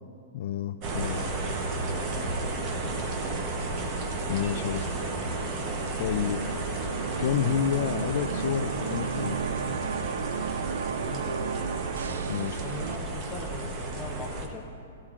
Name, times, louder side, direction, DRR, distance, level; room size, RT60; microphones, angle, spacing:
voice 1, 0.3-1.2 4.3-4.9 6.0-6.4 7.2-9.4 12.3-12.7, left 10 dB, 45° left, 9 dB, 0.3 m, -29 dB
sound 1, 0.8-14.5, right 2 dB, 25° right, 0.9 m, -32 dB
voice 2, 2.7-3.6 6.2-6.3 10.9-11.5 12.6-14.7, left 2 dB, 5° left, -2 dB, 0.9 m, -42 dB
sound 2, 6.5-13.0, right 7 dB, 75° right, 0.4 m, -34 dB
16.0 x 15.0 x 2.5 m, 2.4 s
hypercardioid pair, 170°, 0 cm